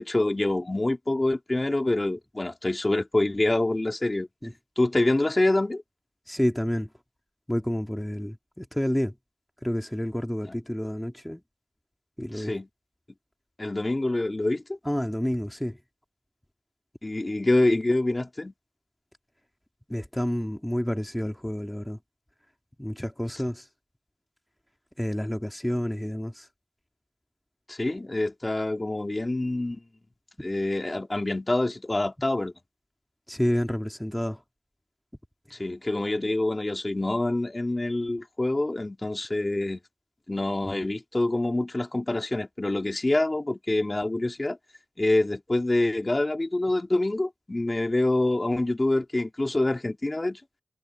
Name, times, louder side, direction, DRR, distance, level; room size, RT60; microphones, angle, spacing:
voice 1, 0.0-4.3 4.8-5.8 10.5-10.6 12.3-12.7 13.6-14.8 17.0-18.5 27.7-29.8 30.4-32.5 35.5-39.8 40.3-44.6 45.0-50.4, left 2 dB, 35° left, 2.5 m, -26 dB
voice 2, 6.3-6.9 7.5-9.1 9.6-11.4 12.2-12.5 14.9-15.8 19.9-22.0 22.8-23.7 25.0-26.5 33.3-34.4, equal, 10° left, 2.0 m, -29 dB
wide cardioid pair, 70°, 0 cm